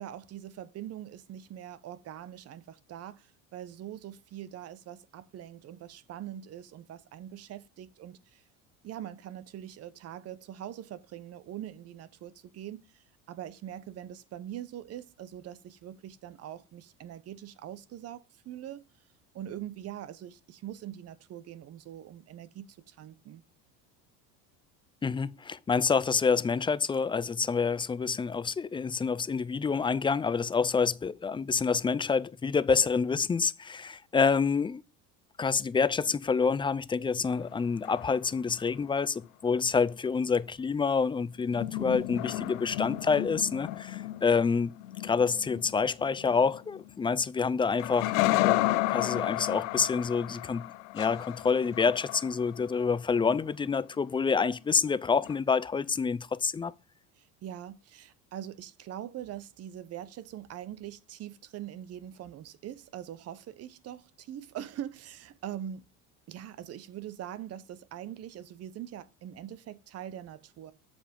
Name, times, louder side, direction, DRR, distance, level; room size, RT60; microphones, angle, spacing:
voice 1, 0.0-8.4 8.8-18.8 19.3-23.4 57.2-65.9 66.3-70.7, right 11 dB, 45° right, 0.9 m, -43 dB
voice 2, 25.0-34.8 35.4-44.7 45.0-48.1 48.4-50.6 50.9-56.7, left 5 dB, 15° left, 0.4 m, -27 dB
sound 1, 37.3-38.6 41.4-47.2 47.8-52.8 55.2-55.4, left 17 dB, 85° left, 0.7 m, -32 dB
7.3 x 5.2 x 5.2 m
supercardioid pair, 110°, 35 cm